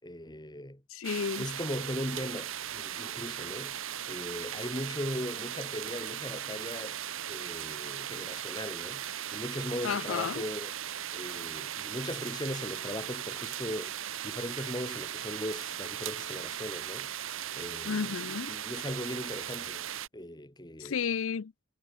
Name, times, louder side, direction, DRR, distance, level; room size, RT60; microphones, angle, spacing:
voice 1, 0.0-0.8 1.4-7.0 7.3-10.7 11.1-13.9 14.2-18.2 18.5-19.9 20.1-21.0, left 1 dB, 20° left, 3.9 m, -39 dB
voice 2, 0.9-1.4 9.8-10.4 17.9-18.5 20.8-21.5, left 6 dB, 65° left, 0.5 m, -32 dB
sound 1, 1.0-20.1, right 10 dB, 65° right, 1.1 m, -38 dB
head